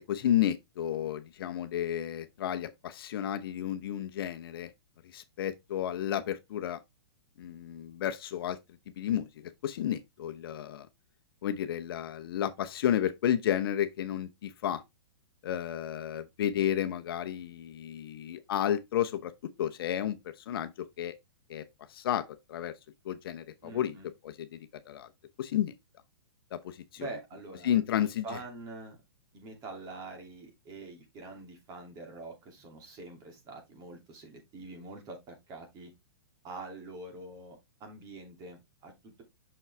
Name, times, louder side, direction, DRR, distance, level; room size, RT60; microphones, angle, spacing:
voice 1, 0.0-4.7 5.1-6.8 7.4-8.6 9.0-10.9 11.4-14.8 15.4-19.3 19.6-20.2 20.5-20.7 21.0-21.1 21.5-21.6 21.9-22.2 22.5-22.7 23.0-24.0 24.2-24.6 24.9-25.1 25.4-25.7 26.5-27.1 27.6-28.2, left 10 dB, 60° left, 0.9 m, -32 dB
voice 2, 23.6-24.1 27.0-27.7 28.0-29.0 29.3-35.9 36.4-39.2, right 3 dB, 25° right, 2.7 m, -45 dB
6.1 x 5.5 x 3.3 m
hypercardioid pair, 150°, 14 cm